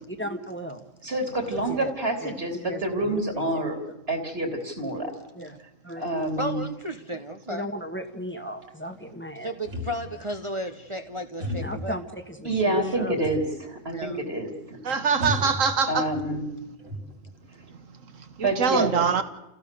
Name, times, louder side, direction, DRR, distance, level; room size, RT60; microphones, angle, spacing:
voice 1, 0.1-0.9 1.5-1.9 2.2-3.8 5.3-5.6 5.8-6.1 7.5-9.5 11.6-13.3 14.9-15.0, equal, 10° left, 5 dB, 1.5 m, -37 dB
voice 2, 1.0-3.8 4.1-5.1 6.0-6.6 12.4-14.8 15.9-16.4 18.4-19.1, right 1 dB, 50° right, 4 dB, 3.4 m, -27 dB
voice 3, 6.4-7.2 7.5-7.7 9.4-12.0 13.9-14.2, equal, 25° right, 6 dB, 1.1 m, -33 dB
sound 1, 9.6-10.3 11.4-12.0 13.2-13.6 13.9-14.0 15.2-16.2 16.6-17.4, left 1 dB, 70° right, 3.6 m, -34 dB
voice 4, 14.8-16.1 18.4-19.2, right 6 dB, 85° right, 11 dB, 1.7 m, -23 dB
29.5 x 16.0 x 6.8 m, 0.96 s
omnidirectional pair, 1.3 m